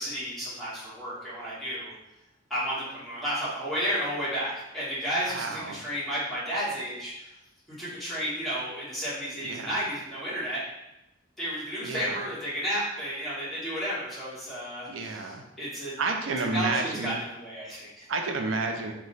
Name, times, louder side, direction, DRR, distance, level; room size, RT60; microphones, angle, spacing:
voice 1, 0.0-1.9 2.5-7.3 7.8-10.6 11.4-16.0 16.5-18.0, equal, ahead, -12 dB, 1.4 m, -32 dB
voice 2, 5.3-5.8 9.4-9.8 11.8-12.2 14.9-15.4 16.0-17.2 18.1-18.9, right 3 dB, 85° right, 4 dB, 0.5 m, -30 dB
3.0 x 2.2 x 3.8 m, 0.91 s
head